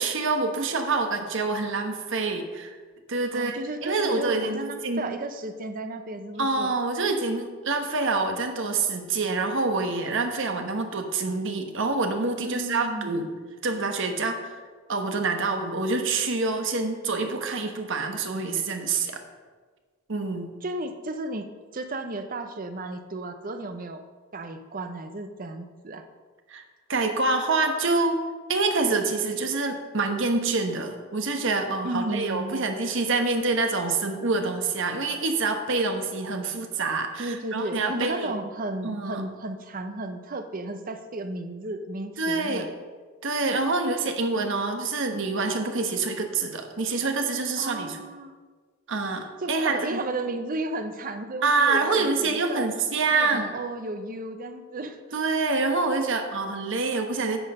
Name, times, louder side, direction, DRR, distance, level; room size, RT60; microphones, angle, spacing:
voice 1, 0.0-2.7 3.1-5.0 6.4-13.3 13.6-14.5 14.9-19.2 20.1-20.5 26.5-26.6 26.9-28.2 28.5-38.3 38.8-39.2 42.2-42.7 43.2-48.0 48.9-50.0 51.4-53.5 55.1-57.4, right 3 dB, 65° right, 5 dB, 1.2 m, -26 dB
voice 2, 3.3-6.7 12.4-13.3 20.6-24.0 24.3-26.0 31.8-32.6 37.2-42.7 47.6-48.3 49.4-52.7 53.1-55.0, right 2 dB, 40° right, 7 dB, 0.8 m, -34 dB
10.0 x 6.3 x 5.5 m, 1.4 s
head